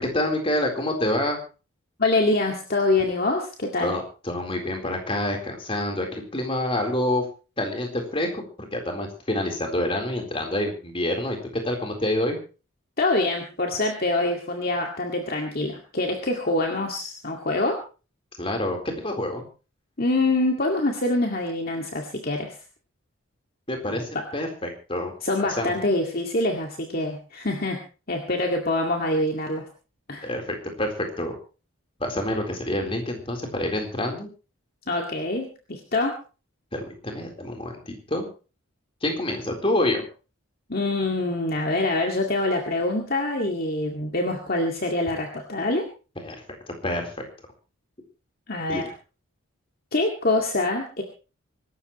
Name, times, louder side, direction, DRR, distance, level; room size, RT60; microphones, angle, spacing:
voice 1, 0.0-1.4 3.8-7.3 7.6-8.4 8.7-12.4 18.4-19.4 23.7-25.1 25.6-25.7 30.2-30.4 30.8-31.4 32.0-34.3 36.7-38.3 39.0-40.1 46.2-46.4 46.8-47.1 48.7-48.9, left 1 dB, 25° left, 3 dB, 4.1 m, -27 dB
voice 2, 2.0-3.9 13.0-17.8 20.0-22.6 23.9-24.2 25.2-27.8 28.1-29.7 30.1-30.3 34.9-36.2 40.7-45.9 48.5-48.9 49.9-51.0, left 2 dB, 45° left, 1 dB, 2.2 m, -25 dB
25.5 x 13.0 x 3.2 m, 0.35 s
head